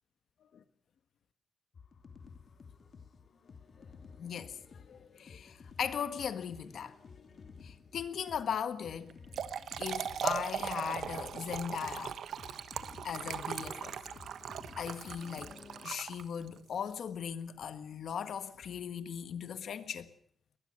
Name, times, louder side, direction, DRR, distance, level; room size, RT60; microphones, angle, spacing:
sound 1, 1.7-15.9, left 5 dB, 45° left, 2.6 m, -54 dB
voice 1, 4.2-6.9 7.6-9.2 9.8-12.2 13.0-14.2 14.8-15.6 15.8-20.1, left 8 dB, 65° left, 1.6 m, -38 dB
Trickle dribble / Fill (with liquid), 9.1-16.6, right 8 dB, 70° right, 1.3 m, -39 dB
23.0 x 20.0 x 6.6 m
wide cardioid pair, 155°, 0 cm